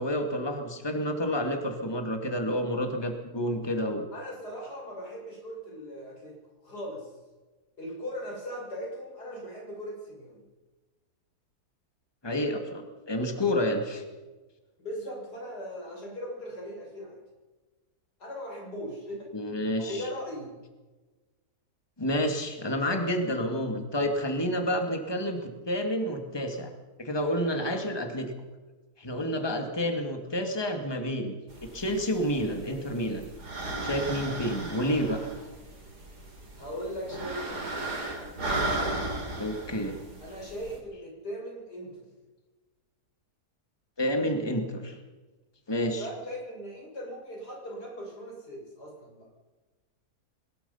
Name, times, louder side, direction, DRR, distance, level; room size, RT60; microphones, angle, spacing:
voice 1, 0.0-4.0 12.2-14.0 19.3-20.0 22.0-26.7 27.0-28.3 29.0-31.3 31.6-33.2 33.8-35.3 39.4-40.0 44.0-45.0 45.7-46.1, equal, 15° left, 4 dB, 2.4 m, -29 dB
voice 2, 4.1-6.4 6.6-7.1 7.8-10.4 14.8-17.2 18.2-19.3 19.8-20.6 36.6-38.0 40.2-42.0 45.8-49.3, equal, 90° left, -1 dB, 7.4 m, -39 dB
sound 1, 31.5-40.8, right 2 dB, 90° right, 4.2 m, -36 dB
23.5 x 20.0 x 5.8 m, 1.2 s
omnidirectional pair, 1.7 m